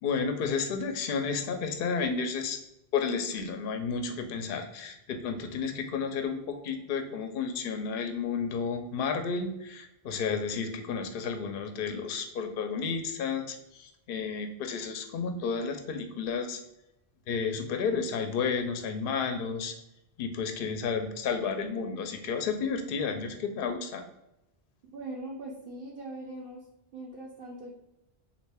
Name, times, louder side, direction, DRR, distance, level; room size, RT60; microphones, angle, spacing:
voice 1, 0.0-2.6 2.9-16.6 17.3-19.7 20.2-24.0, left 5 dB, 65° left, 6 dB, 0.7 m, -32 dB
voice 2, 24.9-26.6 26.9-27.7, right 2 dB, 60° right, -4 dB, 0.8 m, -41 dB
3.1 x 2.5 x 3.4 m, 0.87 s
omnidirectional pair, 1.0 m